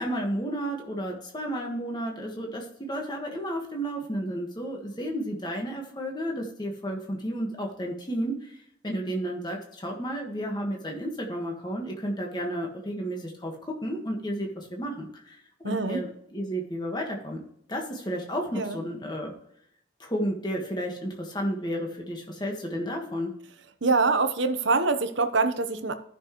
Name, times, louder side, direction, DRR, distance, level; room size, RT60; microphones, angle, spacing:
voice 1, 0.0-8.6 8.8-17.4 17.7-19.3 20.0-23.3, equal, 20° left, 1 dB, 1.5 m, -32 dB
voice 2, 15.6-16.0 18.5-18.8 23.8-25.9, right 3 dB, 70° right, 8 dB, 0.9 m, -24 dB
14.5 x 6.1 x 3.1 m, 0.70 s
head